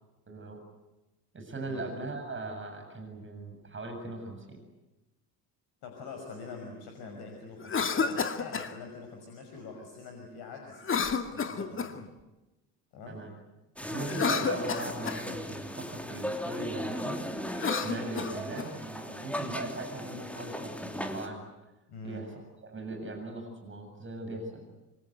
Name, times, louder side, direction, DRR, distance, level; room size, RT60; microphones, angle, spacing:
voice 1, 0.3-0.6 1.3-4.6 13.1-13.3 13.8-17.2 17.5-21.4 22.0-24.7, right 2 dB, 25° right, 4 dB, 7.6 m, -39 dB
voice 2, 5.8-10.8 11.3-12.0 12.9-13.2 21.9-22.2, left 4 dB, 50° left, 3 dB, 5.9 m, -44 dB
Cough, 7.6-8.7 10.8-12.1 14.0-15.2 17.5-18.7, left 5 dB, 25° left, 2.1 m, -31 dB
sound 1, 13.8-21.3, equal, 5° left, 3.2 m, -37 dB
27.0 x 26.0 x 8.2 m, 1.0 s
figure-of-eight pair, 60°, 48 cm